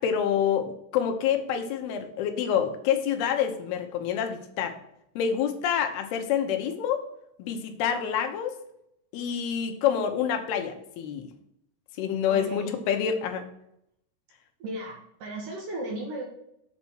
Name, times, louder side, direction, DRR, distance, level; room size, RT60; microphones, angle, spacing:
voice 1, 0.0-4.8 5.2-7.0 7.4-8.6 9.1-11.3 12.0-13.5, left 8 dB, 80° left, 6 dB, 2.9 m, -27 dB
voice 2, 12.3-12.8 14.6-16.2, right 1 dB, 65° right, -1 dB, 2.7 m, -35 dB
8.0 x 4.2 x 6.2 m, 0.77 s
omnidirectional pair, 4.6 m